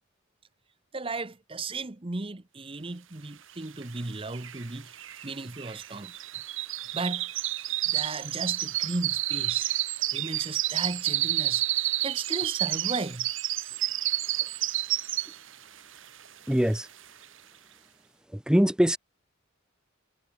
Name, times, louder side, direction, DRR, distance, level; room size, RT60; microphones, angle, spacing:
voice 1, 0.9-6.1 6.9-7.4 7.9-9.7 10.1-13.3, right 3 dB, 25° right, 0.9 m, -35 dB
sound 1, 3.8-3.9 4.1-15.6 16.0-16.3 16.7-16.8, right 15 dB, 70° right, 1.7 m, -30 dB
voice 2, 16.5-16.9 18.3-19.0, equal, 5° right, 0.5 m, -22 dB
head